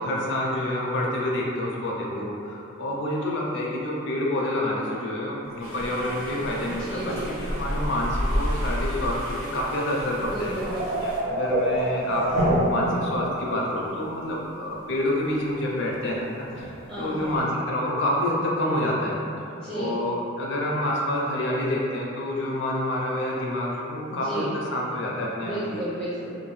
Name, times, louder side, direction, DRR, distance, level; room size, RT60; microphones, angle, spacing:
voice 1, 0.0-10.6 11.0-19.2 19.7-25.8, left 1 dB, 55° left, -3 dB, 0.4 m, -28 dB
sound 1, 5.4-6.5 7.1-7.7 8.3-8.5 8.8-9.0 9.5-9.6 10.1-13.4 13.8-13.9 16.1-16.2 16.5-16.7 17.2-17.4, right 1 dB, 90° right, 0.7 m, -27 dB
sound 2, 5.6-11.2, equal, 70° right, 1.4 m, -31 dB
voice 2, 6.6-7.3 10.1-11.4 16.9-17.4 19.5-20.0 24.1-24.5 25.4-26.4, right 1 dB, 25° right, -13 dB, 0.5 m, -33 dB
2.7 x 2.2 x 3.1 m, 2.8 s
head